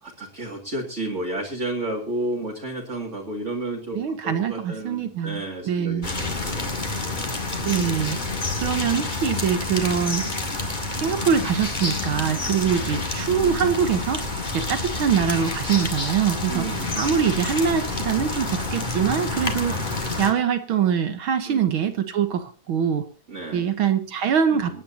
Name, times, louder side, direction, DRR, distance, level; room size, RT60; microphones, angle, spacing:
voice 1, 0.0-7.4 12.7-13.1 16.5-17.3 19.7-19.8 21.5-21.7 23.3-23.7 24.5-24.8, right 2 dB, 25° right, -2 dB, 2.1 m, -32 dB
voice 2, 3.9-6.1 7.6-8.2 8.6-10.3 11.0-14.2 14.5-16.7 17.0-19.8 20.2-23.0 23.5-24.8, right 8 dB, 65° right, 10 dB, 1.4 m, -23 dB
sound 1, 6.0-20.3, left 2 dB, 20° left, 1.6 m, -28 dB
26.5 x 9.9 x 2.8 m, 0.33 s
omnidirectional pair, 3.4 m